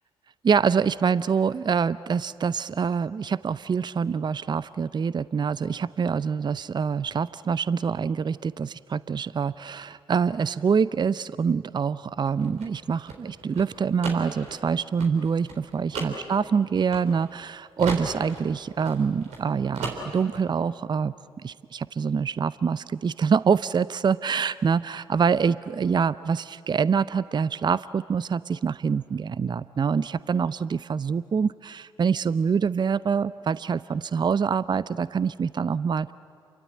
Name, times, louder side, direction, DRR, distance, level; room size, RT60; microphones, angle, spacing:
voice 1, 0.4-21.1 21.4-36.1, right 6 dB, 40° right, 18 dB, 0.6 m, -25 dB
sound 1, 12.2-17.5 17.8-19.5 19.7-20.4, right 4 dB, 70° right, 3.9 m, -36 dB
28.5 x 23.5 x 8.6 m, 2.2 s
hypercardioid pair, 40°, 12 cm